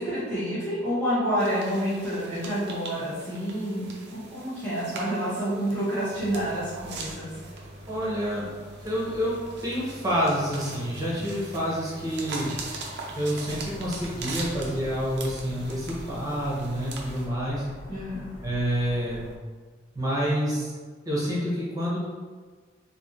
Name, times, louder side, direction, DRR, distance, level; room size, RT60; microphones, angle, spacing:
voice 1, 0.0-7.4 17.9-18.3, equal, 5° left, -15 dB, 0.9 m, -29 dB
sound 1, 1.4-17.3, right 3 dB, 60° right, 0.6 m, -42 dB
sound 2, 6.1-14.9, equal, 35° left, 0.8 m, -45 dB
voice 2, 7.9-8.5 8.8-12.6 13.1-17.6 18.4-19.2 19.9-20.7 21.0-22.0, equal, 20° right, -7 dB, 1.0 m, -28 dB
sound 3, 13.4-19.4, equal, 80° left, 0.5 m, -43 dB
3.3 x 2.8 x 2.8 m, 1.5 s
head